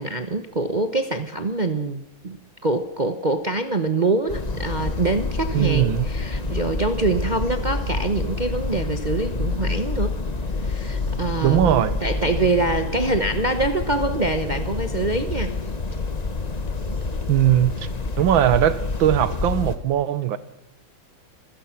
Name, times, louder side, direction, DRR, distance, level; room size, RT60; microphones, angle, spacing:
voice 1, 0.0-10.2 10.6-15.5, right 2 dB, 30° right, 0.8 m, -25 dB
sound 1, 4.3-19.8, left 3 dB, 25° left, 1.1 m, -28 dB
voice 2, 5.5-6.1 11.4-12.0 17.3-17.9 18.2-20.4, right 11 dB, 75° right, 1.8 m, -20 dB
27.5 x 16.5 x 5.9 m
omnidirectional pair, 2.2 m